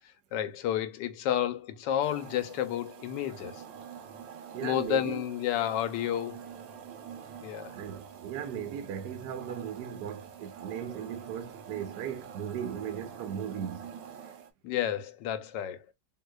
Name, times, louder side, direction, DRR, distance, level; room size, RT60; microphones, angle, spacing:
voice 1, 0.3-3.6 4.6-6.5 7.4-7.8 14.6-15.8, left 10 dB, 90° left, 1.3 m, -31 dB
sound 1, 2.0-14.5, right 8 dB, 90° right, 1.4 m, -46 dB
voice 2, 4.5-5.2 7.7-13.9, right 8 dB, 75° right, 1.2 m, -37 dB
3.8 x 2.8 x 2.2 m
omnidirectional pair, 1.9 m